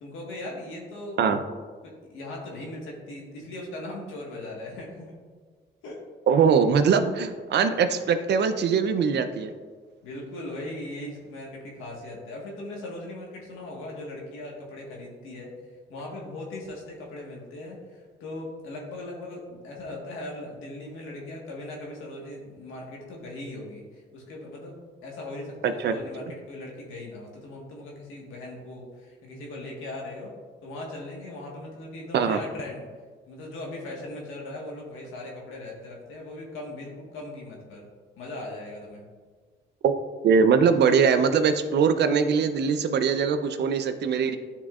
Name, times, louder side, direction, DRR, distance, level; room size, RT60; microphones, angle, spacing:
voice 1, 0.0-1.2 1.8-5.2 5.8-6.0 10.0-15.5 15.9-30.4 30.6-32.9 33.3-37.8 38.2-39.0, left 1 dB, 85° left, -2 dB, 1.5 m, -39 dB
voice 2, 6.3-9.5 25.6-26.0 32.1-32.4 39.8-39.9 40.2-44.4, right 6 dB, 60° right, 9 dB, 0.5 m, -22 dB
10.5 x 3.6 x 2.4 m, 1.5 s
cardioid pair, 90°, 20 cm